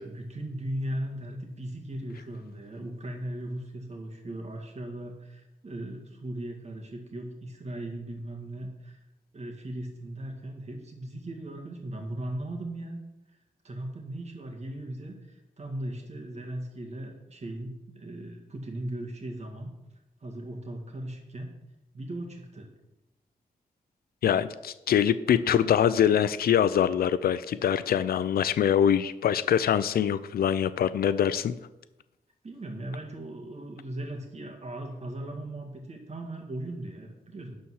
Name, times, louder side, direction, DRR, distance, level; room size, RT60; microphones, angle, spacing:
voice 1, 0.0-9.0 9.3-13.0 13.6-19.7 20.2-21.5 21.9-22.7 32.4-37.6, right 1 dB, 45° right, 3 dB, 2.0 m, -38 dB
voice 2, 24.2-31.5, left 9 dB, 80° left, 14 dB, 0.4 m, -24 dB
11.5 x 4.3 x 6.3 m, 0.98 s
cardioid pair, 85°, 15 cm